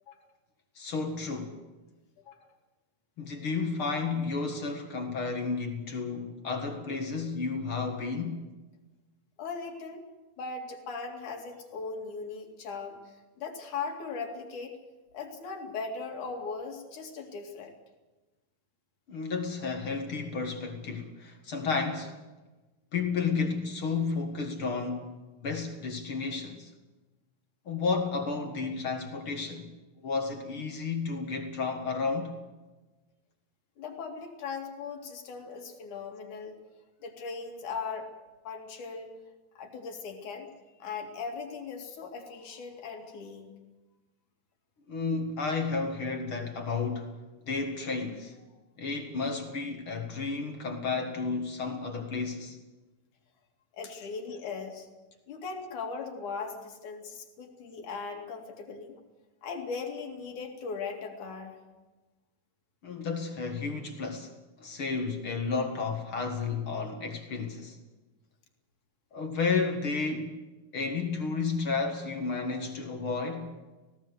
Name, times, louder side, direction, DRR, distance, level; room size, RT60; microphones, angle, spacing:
voice 1, 0.8-1.6 3.2-8.4 19.1-22.2 22.9-25.1 25.4-26.7 27.7-29.7 30.0-32.4 44.9-47.1 47.4-48.4 48.8-52.6 62.8-64.3 64.6-67.8 69.1-70.4 70.7-73.6, left 4 dB, 45° left, 2.3 m, -32 dB
voice 2, 9.4-10.0 10.4-14.8 15.1-17.8 33.8-36.6 37.0-38.1 38.5-39.2 39.6-40.5 40.8-43.5 53.7-54.9 55.3-59.0 59.4-61.6, left 5 dB, 65° left, 3.7 m, -39 dB
19.0 x 17.0 x 8.1 m
omnidirectional pair, 3.8 m